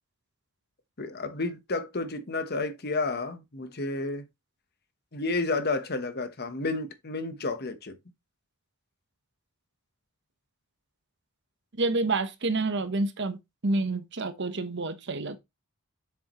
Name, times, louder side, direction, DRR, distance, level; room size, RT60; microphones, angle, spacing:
voice 1, 1.0-4.3 5.1-8.0, left 3 dB, 45° left, 1.1 m, -31 dB
voice 2, 11.7-15.4, right 2 dB, 55° right, 1.0 m, -28 dB
7.3 x 7.1 x 3.1 m
head